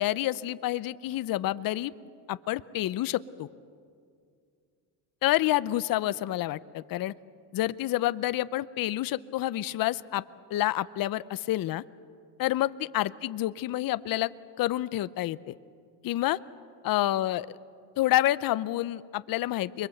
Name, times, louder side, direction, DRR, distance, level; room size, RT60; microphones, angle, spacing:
voice 1, 0.0-1.9 2.3-3.5 5.2-7.1 7.5-10.2 10.5-11.8 12.4-15.5 16.0-16.4 16.8-17.5 18.0-19.9, left 15 dB, 50° left, 16 dB, 0.7 m, -28 dB
29.5 x 22.5 x 7.9 m, 2.2 s
cardioid pair, 105°, 45 cm